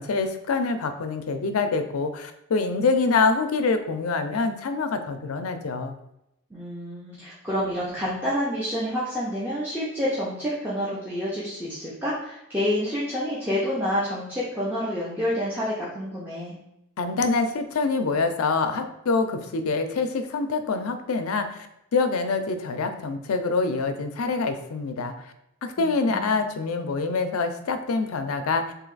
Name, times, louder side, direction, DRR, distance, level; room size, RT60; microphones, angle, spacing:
voice 1, 0.0-5.9 17.0-21.7 21.9-25.1 25.6-28.7, left 4 dB, 75° left, 7 dB, 0.4 m, -25 dB
voice 2, 6.5-16.5 25.8-26.4, equal, 10° right, -8 dB, 0.6 m, -28 dB
3.2 x 2.8 x 3.8 m, 0.84 s
head